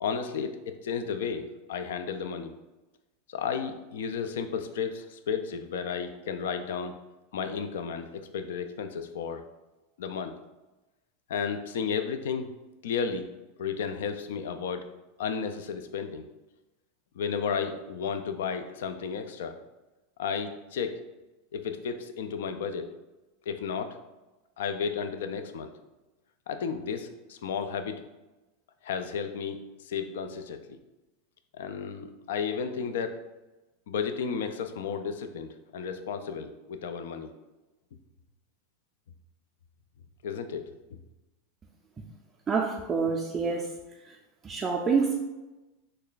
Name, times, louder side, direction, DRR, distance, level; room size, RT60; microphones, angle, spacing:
voice 1, 0.0-2.5 3.3-7.0 7.3-9.4 10.0-10.3 11.3-12.5 12.8-13.3 13.6-14.9 15.2-16.3 17.2-19.6 20.2-21.0 21.5-22.9 23.5-24.0 24.6-25.7 26.5-28.0 28.8-30.6 31.5-33.2 33.9-37.3 40.2-40.6, left 6 dB, 80° left, 8 dB, 0.3 m, -33 dB
voice 2, 42.5-43.7 44.4-45.1, right 5 dB, 25° right, -1 dB, 0.3 m, -27 dB
3.2 x 2.2 x 3.9 m, 1.1 s
supercardioid pair, 125°, 0 cm